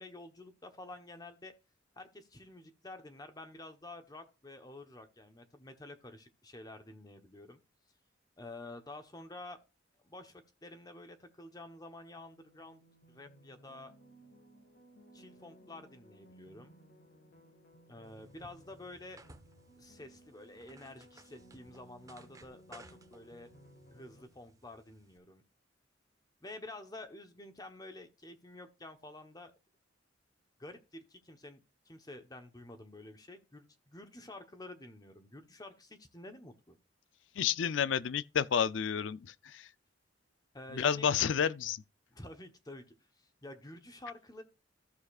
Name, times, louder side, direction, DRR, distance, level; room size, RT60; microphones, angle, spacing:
voice 1, 0.0-1.5 2.0-7.6 8.4-9.6 10.0-12.8 13.1-13.9 15.1-16.7 17.9-19.2 19.8-22.8 23.1-23.5 23.9-25.4 26.4-29.5 30.6-36.8 40.5-41.1 42.1-42.9 43.2-44.4, left 2 dB, 20° left, 1.0 m, -49 dB
sound 1, 12.2-24.2, right 1 dB, 55° left, 1.9 m, -60 dB
sound 2, 18.0-25.2, right 2 dB, 20° right, 0.8 m, -60 dB
voice 2, 37.3-39.7 40.7-41.8, left 8 dB, 80° left, 0.4 m, -30 dB
14.5 x 6.5 x 2.4 m
head